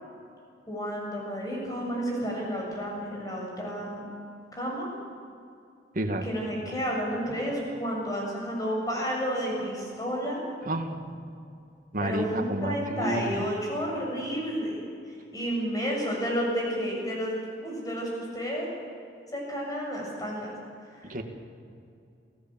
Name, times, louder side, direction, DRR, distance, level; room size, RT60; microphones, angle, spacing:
voice 1, 0.7-4.0 4.5-4.9 6.2-10.4 12.0-14.8 15.3-18.7 19.3-20.5, equal, 20° left, -2 dB, 7.3 m, -31 dB
voice 2, 5.9-6.2 10.6-11.2 11.9-13.5 21.1-21.2, right 1 dB, 50° right, 5 dB, 2.1 m, -30 dB
28.0 x 16.5 x 7.6 m, 2.5 s
head